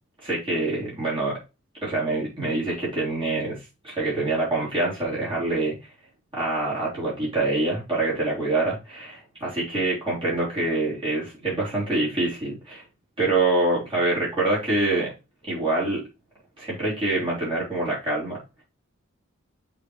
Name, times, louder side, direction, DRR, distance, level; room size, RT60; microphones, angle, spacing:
voice 1, 0.2-1.4 1.8-5.8 6.3-12.8 13.2-15.1 15.5-16.0 16.6-18.4, right 2 dB, 25° right, -7 dB, 3.4 m, -25 dB
7.9 x 4.0 x 3.2 m, 0.27 s
head